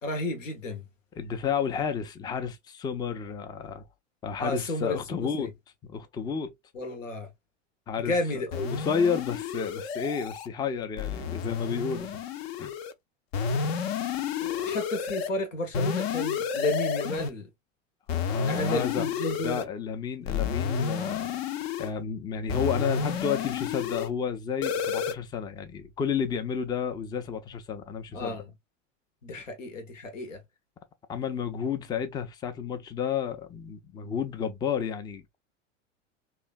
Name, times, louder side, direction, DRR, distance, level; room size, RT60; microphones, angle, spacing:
voice 1, 0.0-0.8 4.4-5.5 6.7-7.3 8.0-8.7 14.4-17.5 18.5-19.7 28.1-28.4 29.2-30.4, left 1 dB, 90° left, 0.9 m, -32 dB
voice 2, 1.2-3.8 4.2-5.5 5.9-6.5 7.9-8.2 8.7-12.1 12.6-12.7 18.3-19.1 19.4-21.4 21.8-28.4 31.1-35.4, left 7 dB, 10° left, 0.3 m, -31 dB
sound 1, 8.5-10.5 11.0-12.9 13.3-15.3 15.7-17.3 18.1-19.6 20.3-21.9 22.5-24.1 24.6-25.1, left 6 dB, 55° left, 0.6 m, -31 dB
3.1 x 2.3 x 2.3 m
hypercardioid pair, 95°, 37 cm